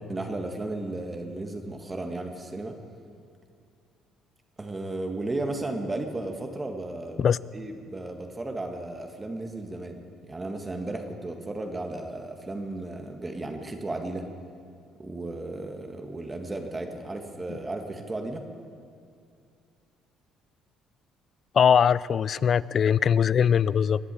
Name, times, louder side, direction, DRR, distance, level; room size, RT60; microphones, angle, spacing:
voice 1, 0.1-2.8 4.6-7.3 7.5-14.3 15.0-18.5, right 2 dB, 25° right, 4 dB, 1.8 m, -34 dB
voice 2, 21.5-24.0, left 7 dB, 50° left, 20 dB, 0.4 m, -21 dB
22.5 x 8.0 x 7.6 m, 2.4 s
supercardioid pair, 65°, 0 cm